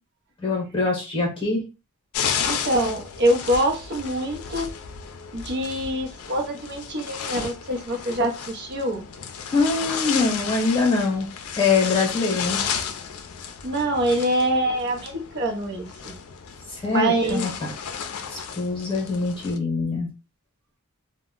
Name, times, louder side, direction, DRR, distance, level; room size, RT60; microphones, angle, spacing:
voice 1, 0.4-1.6 9.5-11.3 11.6-12.6 16.7-17.7 18.3-20.1, left 4 dB, 25° left, 0 dB, 0.9 m, -23 dB
sound 1, 2.1-19.6, left 7 dB, 80° left, 0.4 m, -33 dB
voice 2, 2.5-4.7 5.3-9.0 13.6-16.1 16.9-17.4, right 1 dB, 50° right, 3 dB, 0.7 m, -25 dB
2.1 x 2.0 x 3.6 m, 0.29 s
head